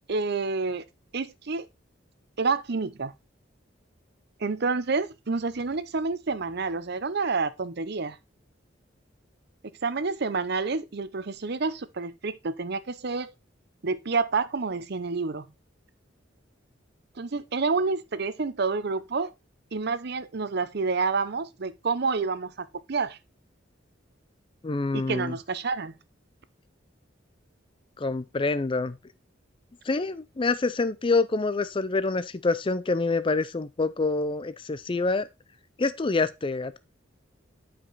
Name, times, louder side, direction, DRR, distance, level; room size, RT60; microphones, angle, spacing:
voice 1, 0.1-0.8 1.1-1.7 2.4-3.1 4.4-8.2 9.8-13.3 13.8-15.5 17.2-19.3 19.7-23.2 24.9-25.9, right 4 dB, 60° right, 0.7 m, -28 dB
voice 2, 24.6-25.4 28.0-29.0 29.9-35.3 35.8-36.8, left 3 dB, 25° left, 0.5 m, -26 dB
8.9 x 5.2 x 4.0 m
head